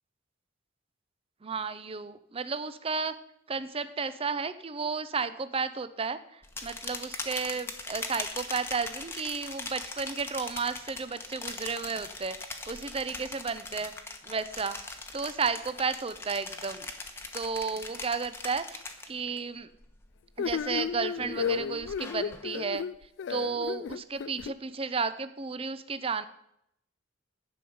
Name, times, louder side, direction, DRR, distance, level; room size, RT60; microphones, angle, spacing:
voice 1, 1.4-3.1 3.5-12.4 12.7-13.9 14.2-16.9 17.3-19.7 20.4-22.8 23.3-26.3, right 5 dB, 30° right, 12 dB, 0.5 m, -33 dB
sound 1, 6.4-19.4 19.7-20.2 20.6-22.5, left 2 dB, 15° left, 1.0 m, -41 dB
sound 2, 20.4-24.5, left 7 dB, 70° left, 0.3 m, -33 dB
11.0 x 5.5 x 7.9 m, 0.76 s
head